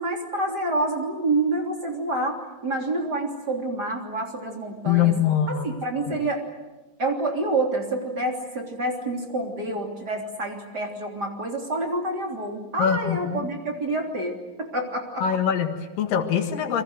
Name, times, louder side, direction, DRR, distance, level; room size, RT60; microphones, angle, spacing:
voice 1, 0.0-5.1 5.5-6.4 7.0-15.2, right 2 dB, 30° right, 2 dB, 3.5 m, -28 dB
voice 2, 4.9-5.7 6.1-6.2 12.8-13.5 15.2-16.8, left 9 dB, 75° left, 6 dB, 3.4 m, -23 dB
29.5 x 23.5 x 8.0 m, 1.1 s
omnidirectional pair, 4.0 m